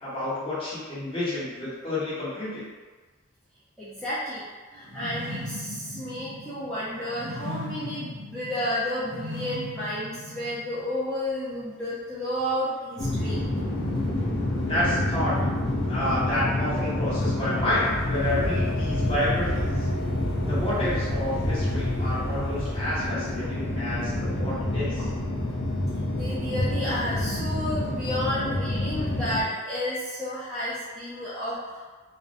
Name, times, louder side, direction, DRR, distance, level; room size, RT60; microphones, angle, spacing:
voice 1, 0.0-2.7 14.7-15.4 15.9-19.6 20.5-25.1, left 1 dB, 25° left, -11 dB, 0.9 m, -29 dB
voice 2, 3.8-13.4 25.9-31.8, left 1 dB, 5° left, -12 dB, 0.3 m, -31 dB
sound 1, 4.8-10.9, left 1 dB, 55° right, 0.6 m, -38 dB
sound 2, 13.0-29.4, left 1 dB, 50° left, 0.5 m, -27 dB
2.4 x 2.0 x 2.5 m, 1.3 s
head